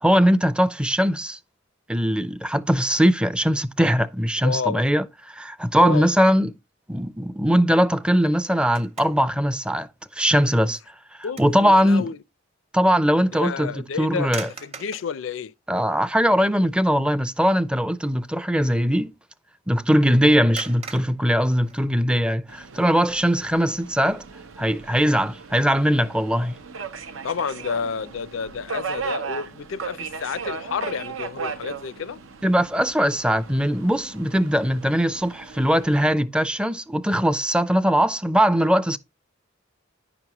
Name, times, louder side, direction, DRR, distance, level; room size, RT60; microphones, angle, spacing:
voice 1, 0.0-1.4 1.9-6.5 6.9-9.9 10.1-10.8 11.4-12.1 12.7-14.5 15.7-19.1 19.7-24.2 24.6-26.6 32.4-39.0, equal, 5° right, 0.4 m, -20 dB
voice 2, 4.4-4.9 5.8-6.1 10.6-10.7 11.2-12.2 13.3-15.5 27.2-32.2, left 6 dB, 75° left, 0.4 m, -30 dB
sound 1, 8.3-9.4 9.9-10.0 10.6-11.7 12.0-12.1 14.2-15.2 16.0-16.1 16.5-16.8 17.1-17.3 20.5-22.2, right 5 dB, 30° right, 0.9 m, -40 dB
Subway metro underground, 22.5-36.1, right 5 dB, 85° right, 0.7 m, -37 dB
10.0 x 6.0 x 2.9 m
head